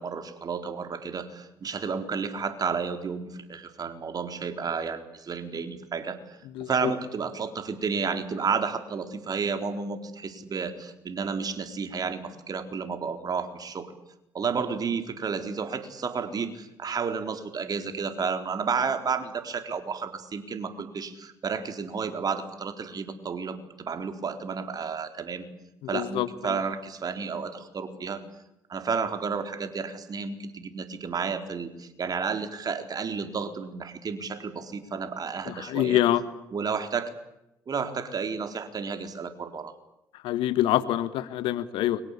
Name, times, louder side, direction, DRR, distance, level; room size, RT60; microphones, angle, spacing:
voice 1, 0.0-13.9 14.3-25.5 25.9-28.2 28.7-36.0 36.5-37.1 37.7-39.7, right 5 dB, 45° right, 8 dB, 4.1 m, -31 dB
voice 2, 25.9-26.3 35.5-36.2 40.2-42.0, left 13 dB, 75° left, 14 dB, 1.6 m, -25 dB
30.0 x 23.5 x 8.5 m, 0.89 s
hypercardioid pair, 55°, 9 cm